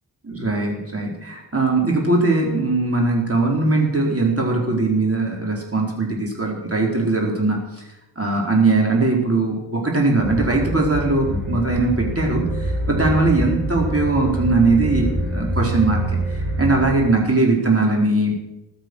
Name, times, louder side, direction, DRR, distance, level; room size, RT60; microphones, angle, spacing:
voice 1, 0.2-7.6 8.2-16.0 16.3-18.3, right 2 dB, 30° right, -1 dB, 4.5 m, -20 dB
sound 1, 10.2-16.9, right 1 dB, ahead, 7.3 m, -25 dB
15.5 x 12.0 x 6.5 m, 0.94 s
wide cardioid pair, 65°, 47 cm